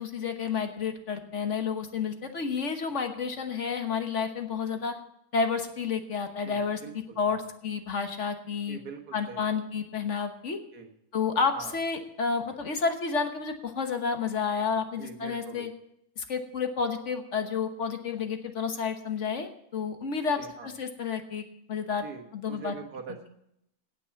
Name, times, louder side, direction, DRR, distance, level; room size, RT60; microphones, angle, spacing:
voice 1, 0.0-4.9 5.3-6.8 7.2-8.8 9.1-10.6 11.1-15.7 16.2-21.4 21.7-22.0 22.3-22.7, left 5 dB, 55° left, 6 dB, 1.4 m, -30 dB
voice 2, 6.4-7.5 8.7-9.6 10.7-10.9 11.5-11.8 15.0-15.7 20.4-20.7 22.0-23.3, right 6 dB, 85° right, 3 dB, 2.0 m, -43 dB
17.5 x 6.1 x 5.8 m, 0.76 s
omnidirectional pair, 1.6 m